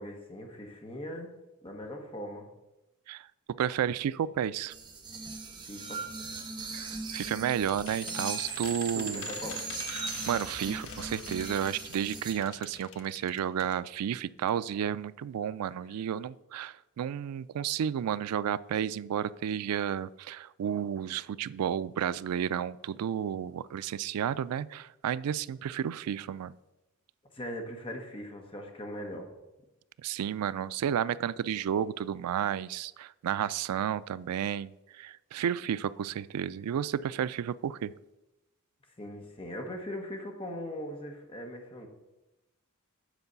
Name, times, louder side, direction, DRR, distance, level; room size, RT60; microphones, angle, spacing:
voice 1, 0.0-1.3 1.6-2.5 5.6-6.0 8.9-9.6 27.3-29.3 39.0-41.9, equal, 25° left, 3 dB, 1.2 m, -40 dB
voice 2, 3.6-4.7 6.7-9.3 9.9-26.5 30.0-37.9, right 9 dB, 90° right, 17 dB, 0.3 m, -32 dB
sound 1, 4.7-12.3, right 4 dB, 20° right, 0.8 m, -40 dB
sound 2, 6.8-11.3, right 7 dB, 70° right, 2.2 m, -41 dB
sound 3, 6.9-13.8 14.1-14.2 14.5-14.6, left 10 dB, 60° left, 0.4 m, -47 dB
8.1 x 4.6 x 6.8 m, 0.97 s
head